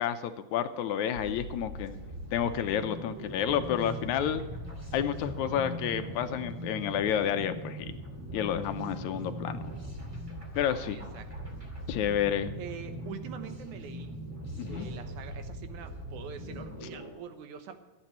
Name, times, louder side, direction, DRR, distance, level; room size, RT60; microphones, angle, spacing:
voice 1, 0.0-2.0 2.3-4.4 4.9-7.9 8.3-9.6 10.6-11.0 11.9-12.5 14.6-14.9, left 9 dB, 80° left, 9 dB, 2.1 m, -30 dB
sound 1, 1.1-17.1, equal, 10° right, 2.0 m, -40 dB
voice 2, 10.9-11.5 12.6-14.2 14.7-17.8, right 8 dB, 85° right, 8 dB, 2.5 m, -44 dB
24.5 x 8.6 x 3.1 m, 1.1 s
omnidirectional pair, 3.4 m